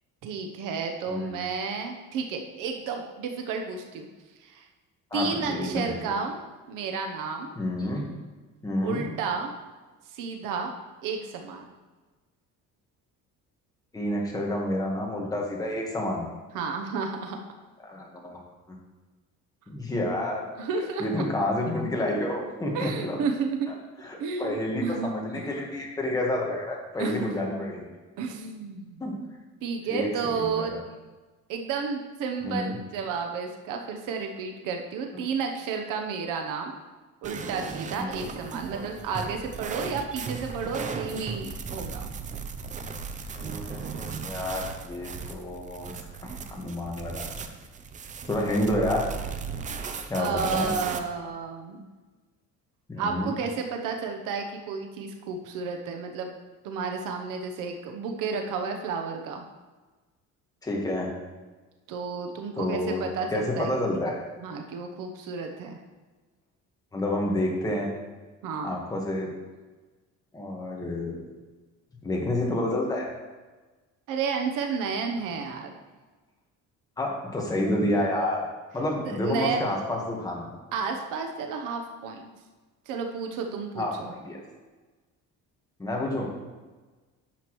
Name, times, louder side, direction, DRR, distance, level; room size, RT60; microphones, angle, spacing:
voice 1, 0.2-4.1 4.4-4.7 5.1-6.4 6.7-7.5 8.8-9.5 10.1-10.7 11.0-11.6 16.5-17.4 20.6-21.3 22.7-23.7 24.2-25.5 27.0-27.3 28.2-29.0 29.6-30.8 31.5-36.8 37.2-42.1 50.2-51.9 53.0-56.3 56.6-59.5 61.9-63.7 64.4-65.8 68.4-68.8 74.1-75.7 79.0-79.7 80.7-82.3 82.9-84.1, right 5 dB, 80° right, 3 dB, 0.9 m, -32 dB
voice 2, 5.1-6.2 7.6-8.0 8.6-9.1 13.9-16.3 17.8-18.4 18.7-18.8 19.7-20.5 21.0-23.2 24.0-27.8 29.0-29.1 29.9-30.8 32.4-32.8 35.1-35.2 38.0-38.1 43.3-47.3 48.3-49.0 50.1-50.7 52.9-53.3 60.6-61.1 62.6-63.0 63.3-64.2 66.9-67.9 68.6-69.3 70.3-71.2 72.0-73.1 77.0-78.4 78.7-80.5 83.8-84.4 85.8-86.3, left 1 dB, 10° left, -1 dB, 1.3 m, -29 dB
sound 1, 37.2-51.0, right 5 dB, 25° right, 0.5 m, -36 dB
10.0 x 7.0 x 3.0 m, 1.3 s
cardioid pair, 160°, 32 cm